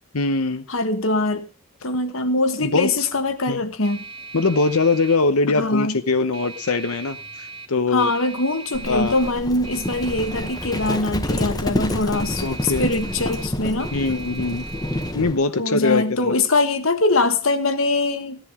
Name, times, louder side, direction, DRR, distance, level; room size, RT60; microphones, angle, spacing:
voice 1, 0.1-0.6 2.6-3.1 3.5-3.6 4.3-8.1 8.9-9.1 12.4-12.9 13.9-14.7 15.1-16.4, left 3 dB, 85° left, 10 dB, 1.0 m, -22 dB
voice 2, 0.7-1.5 1.8-4.0 5.5-6.0 7.9-13.9 15.6-18.4, left 2 dB, 65° left, 9 dB, 1.5 m, -22 dB
sound 1, 1.5-17.9, right 4 dB, 25° right, 1.4 m, -41 dB
Livestock farm animals working animals, 8.7-15.4, left 1 dB, 15° left, 1.2 m, -28 dB
15.0 x 10.5 x 4.9 m, 0.34 s
head